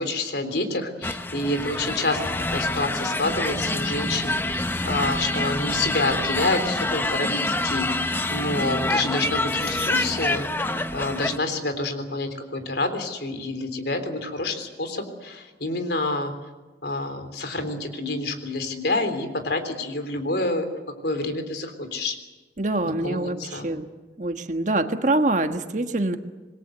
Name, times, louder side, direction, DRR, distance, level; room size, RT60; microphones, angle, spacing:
voice 1, 0.0-16.3 16.8-20.7 21.0-22.2 22.8-23.7, left 2 dB, 70° left, 7 dB, 3.5 m, -28 dB
sound 1, 1.0-11.4, left 2 dB, 10° left, 0.9 m, -26 dB
voice 2, 22.6-23.9 24.2-26.2, right 2 dB, 45° right, 7 dB, 1.5 m, -25 dB
27.0 x 21.5 x 8.0 m, 1.2 s
head